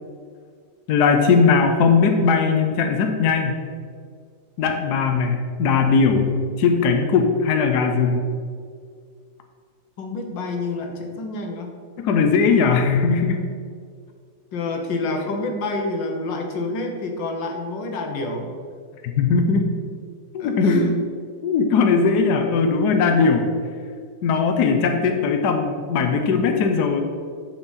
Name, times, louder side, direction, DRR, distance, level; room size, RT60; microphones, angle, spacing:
voice 1, 0.9-3.6 4.6-6.2 6.6-8.2 12.0-13.4 19.2-19.7 20.3-20.8 21.4-23.5 24.2-27.0, left 5 dB, 70° left, 4 dB, 1.2 m, -19 dB
voice 2, 10.0-11.8 14.5-18.5 20.4-21.0, left 2 dB, 85° left, 3 dB, 1.8 m, -28 dB
9.7 x 6.2 x 4.1 m, 2.1 s
omnidirectional pair, 1.9 m